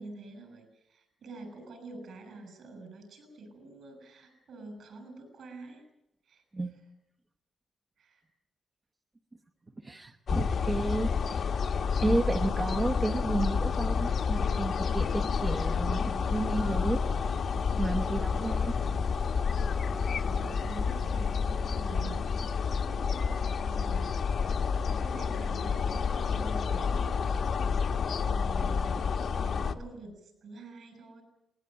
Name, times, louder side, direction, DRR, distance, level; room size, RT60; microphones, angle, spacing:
voice 1, 0.0-5.8 6.3-6.4 8.0-8.2 20.2-22.6 22.9-24.2 24.8-27.8 28.2-31.2, right 3 dB, 65° right, 8 dB, 7.0 m, -47 dB
voice 2, 9.8-11.6 12.0-17.0 17.8-18.7, right 2 dB, 20° right, 6 dB, 0.9 m, -32 dB
sound 1, 10.3-29.7, left 6 dB, 55° left, 1.1 m, -29 dB
sound 2, 16.6-22.7, left 2 dB, ahead, 1.1 m, -42 dB
20.5 x 19.5 x 9.2 m, 0.87 s
wide cardioid pair, 165°, 0 cm